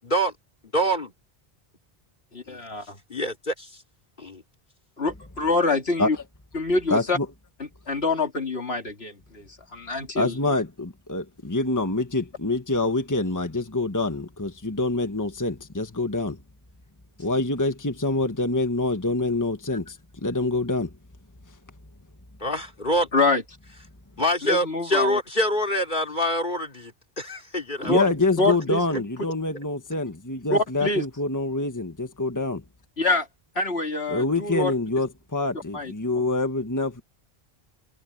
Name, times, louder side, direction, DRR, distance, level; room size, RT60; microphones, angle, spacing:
voice 1, 0.7-1.1 2.5-2.6 3.1-3.7 4.2-4.4 22.4-23.1 24.2-27.9, equal, 50° left, 4.0 m, -25 dB
voice 2, 2.3-3.0 5.0-6.2 6.5-7.2 7.9-10.3 23.1-23.4 24.4-25.2 27.8-28.0 28.4-29.0 30.5-31.0 33.0-33.3 33.5-34.7 35.7-35.9, left 3 dB, 80° left, 3.1 m, -25 dB
voice 3, 6.9-7.3 10.1-16.4 17.2-20.9 27.9-32.6 34.1-37.0, left 2 dB, 20° left, 1.5 m, -26 dB
omnidirectional pair, 1.0 m